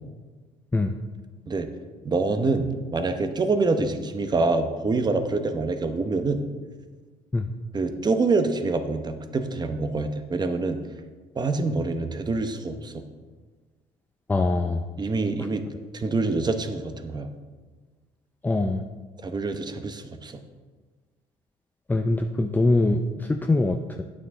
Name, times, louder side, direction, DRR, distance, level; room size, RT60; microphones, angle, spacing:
voice 1, 2.0-6.4 7.7-10.8 11.3-13.0 15.0-15.6 15.9-17.3 19.2-20.4, right 3 dB, 25° right, 7 dB, 0.9 m, -26 dB
voice 2, 14.3-14.8 18.4-18.8 21.9-24.0, left 2 dB, 10° left, 5 dB, 0.4 m, -23 dB
9.6 x 8.6 x 3.7 m, 1.4 s
cardioid pair, 110°, 17 cm